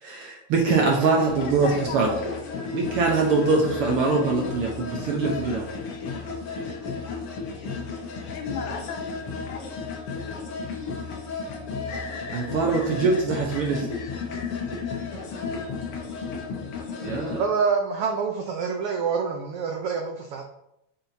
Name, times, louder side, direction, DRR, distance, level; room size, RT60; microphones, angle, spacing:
voice 1, 0.0-2.2 2.7-5.7 12.3-13.9 17.0-17.4, right 4 dB, 70° right, 0 dB, 1.4 m, -23 dB
voice 2, 1.3-2.2 8.3-9.7 10.2-10.3, left 6 dB, 80° left, 5 dB, 2.2 m, -36 dB
sound 1, 1.3-17.4, left 4 dB, 60° left, 1.8 m, -33 dB
voice 3, 17.4-20.4, right 5 dB, 85° right, 3 dB, 1.2 m, -26 dB
8.5 x 5.9 x 2.7 m, 0.81 s
omnidirectional pair, 3.5 m